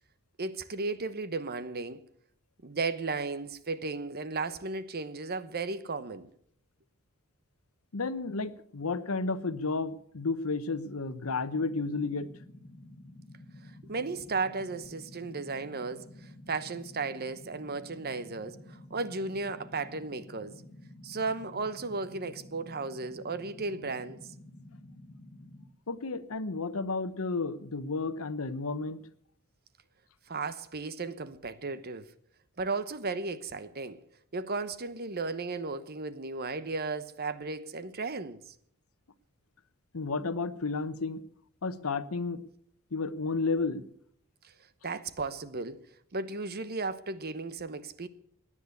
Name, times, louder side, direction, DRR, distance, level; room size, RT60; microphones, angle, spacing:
voice 1, 0.4-2.0 2.6-6.3 13.9-20.5 21.0-24.3 30.3-32.1 32.6-34.0 34.3-38.5 44.8-45.8 46.1-48.1, right 3 dB, 45° right, 1.0 m, -35 dB
voice 2, 7.9-12.3 25.9-29.0 39.9-41.2 41.6-42.4 42.9-43.8, left 3 dB, 80° left, 1.0 m, -32 dB
sound 1, 11.5-25.7, left 1 dB, 25° left, 0.9 m, -51 dB
17.0 x 10.0 x 8.2 m
head